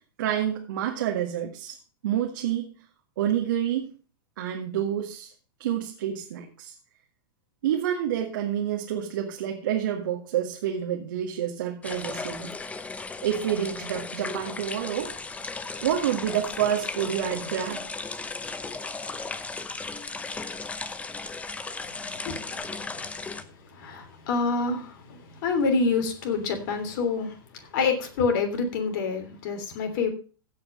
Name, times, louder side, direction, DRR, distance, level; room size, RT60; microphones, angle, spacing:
voice 1, 0.2-1.8 2.0-2.7 3.2-3.9 4.4-5.3 5.6-6.7 7.6-12.5 13.2-15.1 15.8-17.8, right 10 dB, 60° right, 1 dB, 1.9 m, -28 dB
sound 1, 11.8-23.4, left 4 dB, 10° left, 0.9 m, -36 dB
voice 2, 22.2-30.1, left 4 dB, 55° left, 6 dB, 3.2 m, -28 dB
15.5 x 5.7 x 5.3 m, 0.37 s
hypercardioid pair, 100°, 12 cm